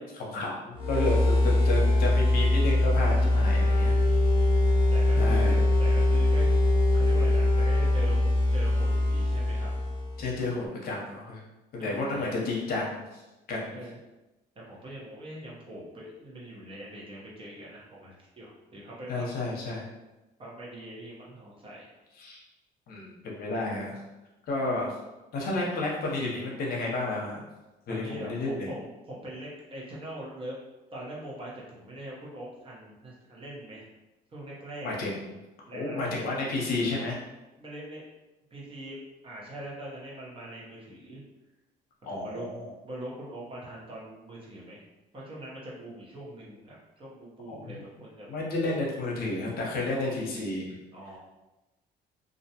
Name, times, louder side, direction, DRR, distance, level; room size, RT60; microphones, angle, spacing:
voice 1, 0.1-4.0 5.2-5.6 10.2-11.4 11.7-13.2 13.5-13.8 19.1-19.8 22.2-22.4 22.9-24.0 24.5-25.0 25.3-27.4 27.9-28.7 34.8-35.2 35.7-37.2 42.0-42.7 47.5-47.8 48.3-50.7, left 2 dB, 60° left, -2 dB, 0.7 m, -31 dB
sound 1, 0.7-10.3, left 1 dB, 30° left, 0.9 m, -23 dB
voice 2, 3.2-4.3 4.9-6.5 6.9-9.7 11.8-12.3 13.7-14.0 14.6-19.5 20.4-21.9 27.9-30.6 30.9-33.9 34.3-35.0 35.7-36.6 37.6-38.1 38.5-41.2 42.1-42.5 42.8-44.8 45.1-48.3 49.9-50.2 50.9-51.2, right 1 dB, 30° right, -5 dB, 0.8 m, -42 dB
2.5 x 2.1 x 2.8 m, 1.0 s
cardioid pair, 110°, 17 cm